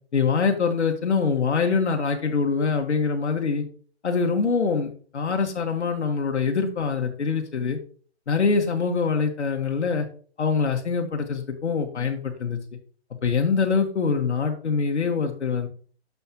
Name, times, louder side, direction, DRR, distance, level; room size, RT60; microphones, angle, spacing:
voice 1, 0.1-3.6 4.0-7.8 8.3-10.1 10.4-12.6 13.2-15.7, left 5 dB, 85° left, 3 dB, 1.6 m, -24 dB
7.3 x 6.9 x 3.0 m, 0.43 s
hypercardioid pair, 170°, 33 cm